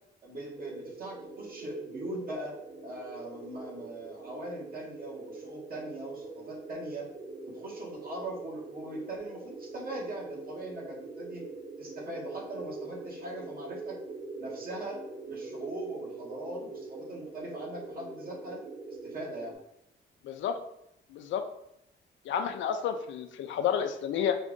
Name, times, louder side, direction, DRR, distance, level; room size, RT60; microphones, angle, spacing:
voice 1, 0.2-7.1 7.4-11.5 11.8-14.0 14.4-15.0 15.3-18.6 18.9-19.6, right 1 dB, 50° right, -3 dB, 1.5 m, -40 dB
sound 1, 0.6-19.5, right 3 dB, 30° right, 0.7 m, -43 dB
voice 2, 20.2-20.6 21.1-21.4 22.2-24.4, left 8 dB, 70° left, 6 dB, 0.5 m, -30 dB
4.4 x 2.5 x 3.7 m, 0.78 s
cardioid pair, 90°, 20 cm